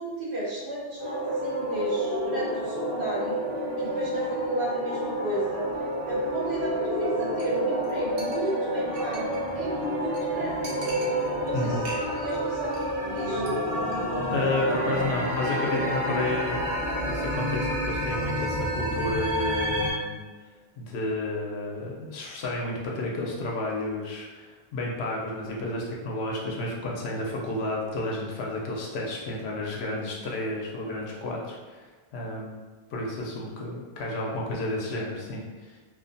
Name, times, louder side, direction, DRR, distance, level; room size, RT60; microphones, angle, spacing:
voice 1, 0.0-3.4 3.8-5.6 6.1-10.7 11.4-11.7 12.0-13.4, right 1 dB, 85° right, -7 dB, 1.2 m, -33 dB
sound 1, 1.0-19.9, equal, 55° right, 1.1 m, -29 dB
Chink clink, 7.4-7.6 7.8-7.9 8.2-9.5 9.8-9.9 10.1-10.2 10.6-11.5 11.8-12.4 12.6-12.9 13.2-13.5 13.8-14.0, right 2 dB, 70° right, 0.8 m, -42 dB
voice 2, 11.5-11.9 14.3-20.2 20.8-31.8 32.1-32.6 32.9-35.8, left 2 dB, 85° left, -2 dB, 0.9 m, -31 dB
2.7 x 2.0 x 2.6 m, 1.3 s
omnidirectional pair, 1.0 m